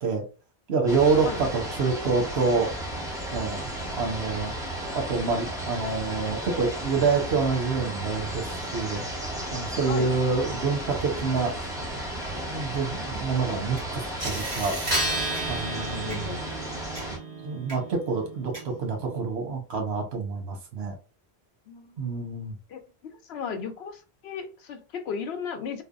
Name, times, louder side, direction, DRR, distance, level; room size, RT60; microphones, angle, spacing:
voice 1, 0.7-2.7 3.3-4.5 4.9-9.0 9.5-11.5 12.3-14.8 15.5-16.3 17.4-20.9 22.0-22.5, right 4 dB, 80° right, 1.1 m, -27 dB
sound 1, 0.9-17.2, right 1 dB, 5° right, 0.7 m, -34 dB
sound 2, 13.8-13.9 14.2-19.2, right 1 dB, 25° right, 1.4 m, -33 dB
voice 2, 15.7-16.5 21.7-22.2 22.7-25.8, left 6 dB, 85° left, 0.9 m, -36 dB
3.3 x 2.1 x 2.3 m
omnidirectional pair, 1.1 m